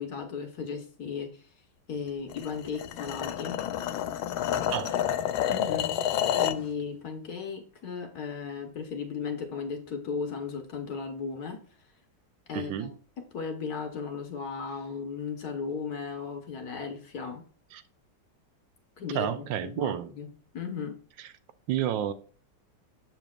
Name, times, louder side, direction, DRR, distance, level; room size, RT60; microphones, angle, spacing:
voice 1, 0.0-1.5 1.9-3.6 5.5-6.0 6.4-11.6 12.5-12.9 13.2-17.4 19.0-21.0, left 5 dB, 55° left, 1.3 m, -36 dB
sound 1, 2.3-6.7, left 10 dB, 80° left, 1.4 m, -29 dB
voice 2, 4.7-5.0 12.5-12.9 17.7-17.8 19.1-20.1 21.7-22.1, right 10 dB, 75° right, 1.2 m, -30 dB
7.6 x 6.8 x 2.4 m
omnidirectional pair, 2.3 m